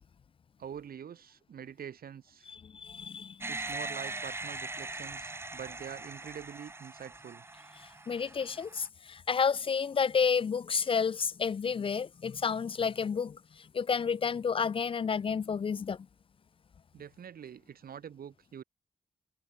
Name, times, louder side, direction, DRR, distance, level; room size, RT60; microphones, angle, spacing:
voice 1, 0.6-2.5 3.5-7.4 16.9-18.6, right 8 dB, 75° right, 2.3 m, -45 dB
voice 2, 2.5-3.5 8.1-13.4 13.7-16.0, left 6 dB, 35° left, 0.4 m, -30 dB
sound 1, 3.4-8.9, right 2 dB, 15° right, 0.8 m, -41 dB
wide cardioid pair, 165°, 15 cm